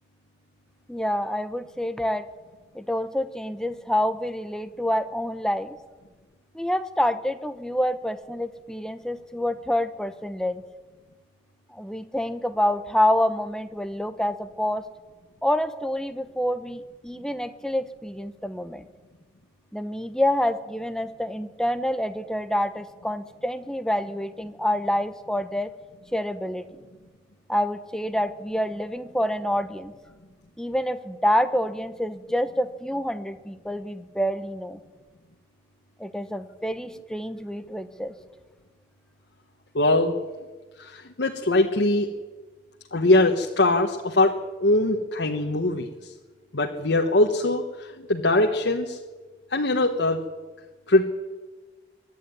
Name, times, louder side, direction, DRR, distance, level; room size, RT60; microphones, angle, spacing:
voice 1, 0.9-2.2 2.7-5.8 6.5-10.6 11.7-14.9 15.4-18.8 19.7-25.7 26.1-26.8 27.5-29.9 30.6-34.8 36.0-38.1, left 1 dB, 5° left, 10 dB, 0.9 m, -27 dB
voice 2, 39.7-40.1 40.8-42.1 42.9-44.3 44.6-45.9 46.5-49.0 49.5-50.2 50.9-51.0, left 2 dB, 85° left, 1 dB, 1.3 m, -22 dB
23.5 x 11.5 x 9.7 m, 1.3 s
head